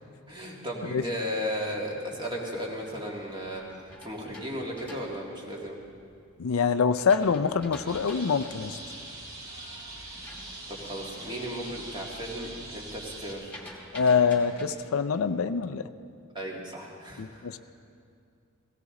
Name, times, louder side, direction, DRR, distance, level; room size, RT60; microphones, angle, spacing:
voice 1, 0.3-3.6 4.0-5.8 10.7-13.5 16.3-17.6, equal, 20° right, -2 dB, 2.1 m, -35 dB
sound 1, 2.5-6.1 6.6-11.5 11.8-12.2 12.5-14.7, left 1 dB, 5° left, 2.2 m, -48 dB
voice 2, 6.4-8.8 13.9-15.8 17.2-17.6, left 5 dB, 80° left, 10 dB, 0.5 m, -25 dB
sound 2, 7.9-13.3, right 2 dB, 75° right, 3.5 m, -42 dB
17.0 x 16.5 x 3.8 m, 2.3 s
head